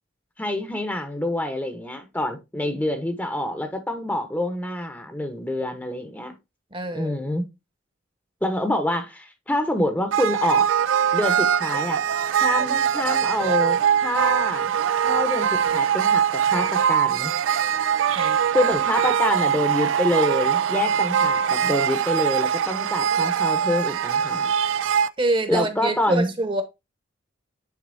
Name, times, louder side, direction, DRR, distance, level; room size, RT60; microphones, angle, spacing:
voice 1, 0.4-6.3 6.9-7.5 8.4-10.7 11.1-12.0 12.4-14.7 15.0-17.3 18.5-24.5 25.5-26.3, left 1 dB, 10° left, 0.8 m, -26 dB
voice 2, 6.7-7.2 18.1-18.4 25.2-26.6, right 2 dB, 25° right, 1.0 m, -25 dB
sound 1, 10.1-25.1, right 8 dB, 90° right, 0.4 m, -22 dB
9.5 x 3.9 x 2.6 m
head